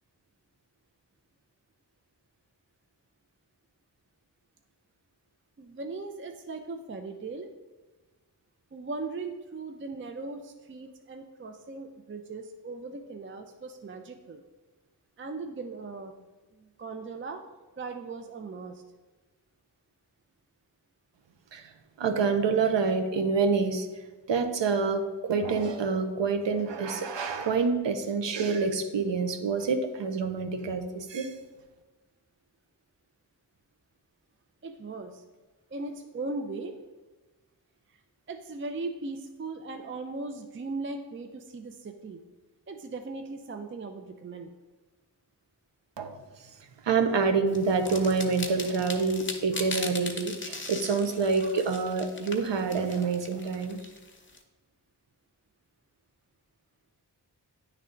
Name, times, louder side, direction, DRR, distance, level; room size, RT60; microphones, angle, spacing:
voice 1, 5.6-7.5 8.7-14.4 15.2-16.1 16.5-17.4 17.8-18.8 34.6-35.2 35.7-36.7 37.9-38.0 38.3-42.2 42.7-44.5, right 3 dB, 30° right, 5 dB, 0.4 m, -38 dB
voice 2, 22.0-23.9 24.3-31.3 46.0-46.2 46.8-53.8, right 4 dB, 85° right, 7 dB, 0.7 m, -27 dB
sound 1, 47.5-54.4, left 3 dB, 25° left, 0.9 m, -39 dB
9.3 x 3.3 x 3.8 m, 1.2 s
wide cardioid pair, 60°, 42 cm